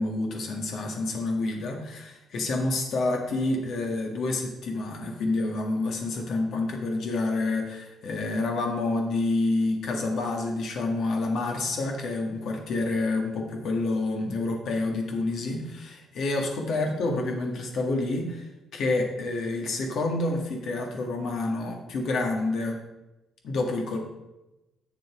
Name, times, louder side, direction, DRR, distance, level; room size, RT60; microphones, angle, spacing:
voice 1, 0.0-22.8 23.4-24.0, left 2 dB, 70° left, 2 dB, 1.7 m, -28 dB
8.1 x 6.6 x 4.9 m, 0.99 s
cardioid pair, 90°, 0 cm